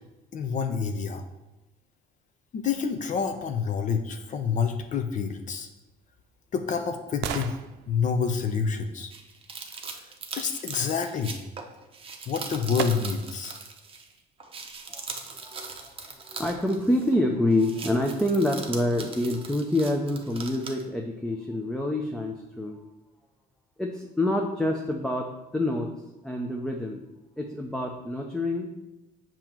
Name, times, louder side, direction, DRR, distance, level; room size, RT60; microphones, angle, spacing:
voice 1, 0.3-1.2 2.5-5.7 6.5-7.6 7.9-9.1 10.3-11.4 12.3-13.6, left 6 dB, 50° left, 6 dB, 0.7 m, -28 dB
sound 1, 5.7-9.8 11.9-12.0 12.8-13.5 14.0-14.1, right 9 dB, 90° right, 0.5 m, -38 dB
sound 2, 9.1-14.1 14.4-17.2 17.5-20.8, right 4 dB, 35° right, 0.9 m, -40 dB
voice 2, 14.9-15.9 16.2-22.8 23.8-25.9 26.2-27.0 27.4-28.8, left 1 dB, 5° left, 1 dB, 0.7 m, -27 dB
7.0 x 3.0 x 6.0 m, 1.0 s
cardioid pair, 110°, 17 cm